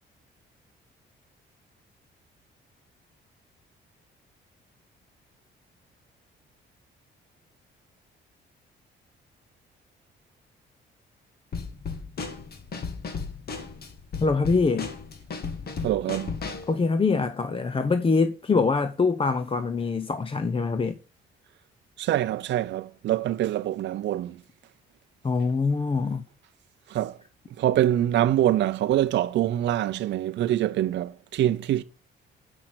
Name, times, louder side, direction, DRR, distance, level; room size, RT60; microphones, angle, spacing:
Drum kit / Snare drum, 11.5-16.7, left 5 dB, 50° left, 1.8 m, -35 dB
voice 1, 14.2-14.9 16.7-20.9 25.2-26.2, left 4 dB, 25° left, 0.7 m, -24 dB
voice 2, 15.8-16.3 22.0-24.4 26.9-27.2 27.6-31.8, right 12 dB, 65° right, 0.5 m, -25 dB
7.9 x 5.9 x 5.8 m
cardioid pair, 90°, 20 cm